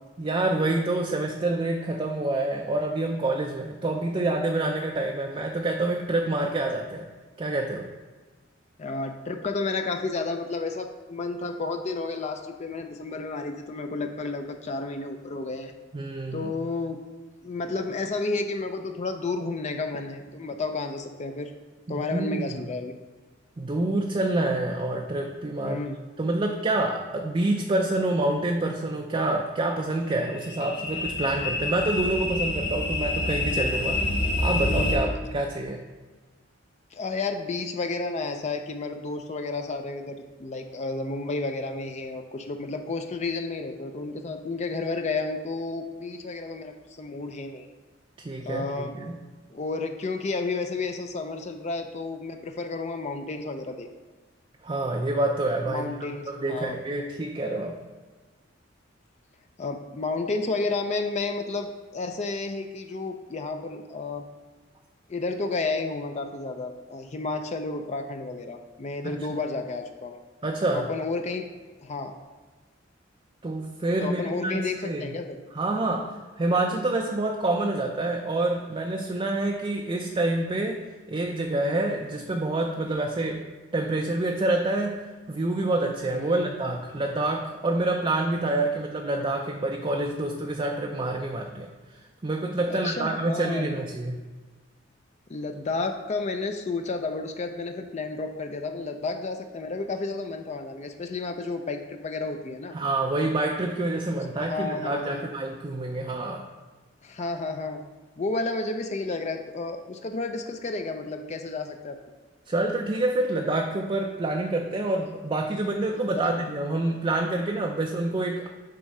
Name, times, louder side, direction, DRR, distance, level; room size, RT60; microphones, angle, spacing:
voice 1, 0.2-7.1 7.4-7.9 15.9-16.5 21.9-22.6 23.6-25.8 26.2-34.0 34.4-35.8 48.2-49.2 54.6-55.9 56.3-57.8 69.0-69.4 70.4-70.9 73.4-75.1 75.5-76.1 76.4-80.8 81.1-83.5 83.7-85.0 85.3-91.7 92.2-94.3 102.7-106.5 112.5-118.5, right 2 dB, 25° right, 2 dB, 0.4 m, -27 dB
voice 2, 8.8-15.7 16.3-17.0 17.4-21.5 21.9-22.9 25.6-26.0 36.9-47.7 48.4-48.9 49.5-53.9 55.6-56.8 59.6-64.2 65.1-70.2 70.7-71.4 71.8-72.1 74.0-75.4 86.1-86.5 92.7-93.8 95.3-102.7 104.1-105.3 107.0-107.8 108.2-112.0 116.2-116.3, left 3 dB, 35° left, 5 dB, 0.4 m, -31 dB
sound 1, 29.9-35.0, left 2 dB, 60° left, 1.4 m, -27 dB
7.6 x 3.7 x 5.4 m, 1.3 s
head